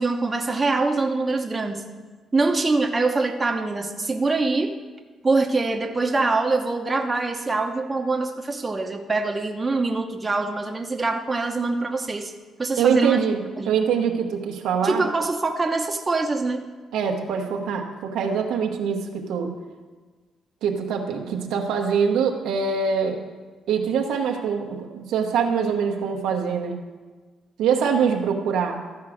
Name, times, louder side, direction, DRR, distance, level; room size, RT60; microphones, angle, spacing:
voice 1, 0.0-1.8 2.3-4.7 5.2-12.3 12.6-13.2 13.6-13.7 14.8-16.6, right 3 dB, 25° right, 3 dB, 0.9 m, -24 dB
voice 2, 12.8-15.0 16.9-19.5 20.6-23.2 23.7-26.8 27.6-28.8, right 6 dB, 90° right, 2 dB, 1.2 m, -24 dB
13.5 x 4.8 x 6.4 m, 1.3 s
cardioid pair, 90°, 0 cm